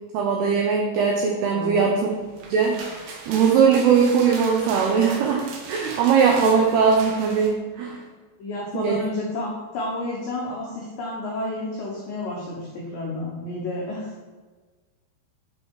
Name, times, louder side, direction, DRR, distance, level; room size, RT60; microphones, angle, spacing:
voice 1, 0.1-2.1 2.5-8.0 8.7-9.0, right 6 dB, 85° right, 0 dB, 2.3 m, -20 dB
voice 2, 1.5-1.9 8.4-14.1, left 2 dB, 85° left, -4 dB, 1.9 m, -31 dB
sound 1, 2.2-7.5, right 3 dB, 70° right, 2.5 m, -38 dB
7.7 x 5.3 x 4.8 m, 1.3 s
omnidirectional pair, 5.7 m